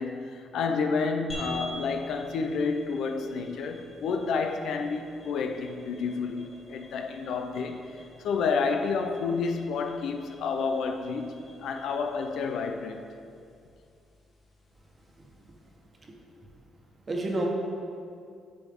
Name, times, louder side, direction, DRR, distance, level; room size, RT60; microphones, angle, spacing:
voice 1, 0.0-7.9 8.2-13.0, left 4 dB, 75° left, 0.6 m, -30 dB
sound 1, 1.3-15.9, equal, 40° left, 1.9 m, -48 dB
voice 2, 15.2-15.5 16.0-16.2 17.1-17.5, right 1 dB, 35° right, 1.3 m, -32 dB
8.6 x 6.3 x 3.7 m
cardioid pair, 90°, 0 cm